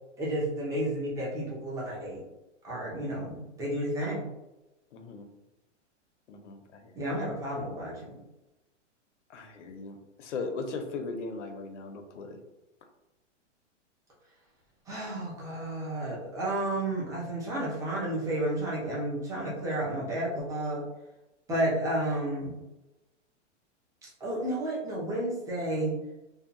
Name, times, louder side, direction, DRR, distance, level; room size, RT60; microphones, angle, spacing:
voice 1, 0.2-2.2 2.6-4.2 7.0-8.1 14.9-20.8 21.5-22.6 24.0-25.9, right 1 dB, 10° right, -5 dB, 0.6 m, -31 dB
voice 2, 4.9-5.3 6.3-7.1 9.3-12.4, left 4 dB, 75° left, 5 dB, 0.7 m, -38 dB
2.7 x 2.3 x 2.5 m, 0.99 s
hypercardioid pair, 140°, 36 cm